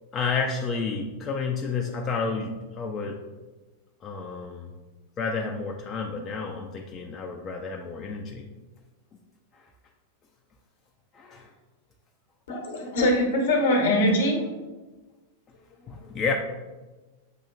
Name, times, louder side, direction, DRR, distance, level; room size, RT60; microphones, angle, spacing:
voice 1, 0.1-3.2 4.0-4.7 5.2-8.5 11.1-11.5 15.9-16.3, left 4 dB, 25° left, 1 dB, 0.4 m, -30 dB
voice 2, 12.5-14.5 15.8-16.2, left 1 dB, 60° left, 1 dB, 1.0 m, -23 dB
6.6 x 2.8 x 2.4 m, 1.2 s
figure-of-eight pair, 90°, 0 cm